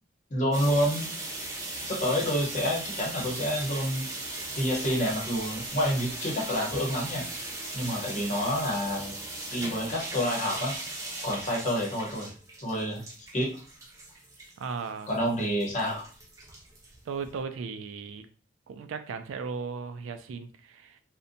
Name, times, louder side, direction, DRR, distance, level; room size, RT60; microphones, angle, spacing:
voice 1, 0.3-1.1 1.9-4.1 4.6-7.2 7.7-9.2 9.5-10.7 11.2-12.3 12.6-13.0 13.3-13.5 15.1-16.0, equal, 40° left, -2 dB, 0.8 m, -28 dB
sound 1, 0.5-17.4, right 2 dB, 15° right, 0.4 m, -38 dB
voice 2, 14.6-15.1 17.1-18.3 18.7-21.0, right 5 dB, 85° right, 10 dB, 0.3 m, -36 dB
2.6 x 2.1 x 2.6 m, 0.40 s
head